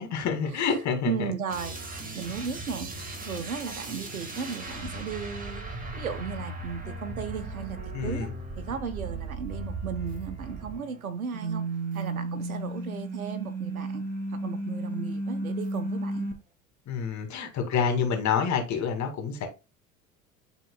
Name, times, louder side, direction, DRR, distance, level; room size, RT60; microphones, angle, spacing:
voice 1, 0.0-1.3 7.9-8.3 16.9-19.5, left 6 dB, 45° left, 2.3 m, -28 dB
voice 2, 1.0-2.9 3.2-5.6 6.0-8.3 8.6-11.6 11.9-14.0 14.3-16.3, right 6 dB, 85° right, 1.1 m, -35 dB
sound 1, 1.5-11.0 11.3-16.3, right 2 dB, 20° right, 2.0 m, -35 dB
12.0 x 4.1 x 2.3 m
hypercardioid pair, 75°, 41 cm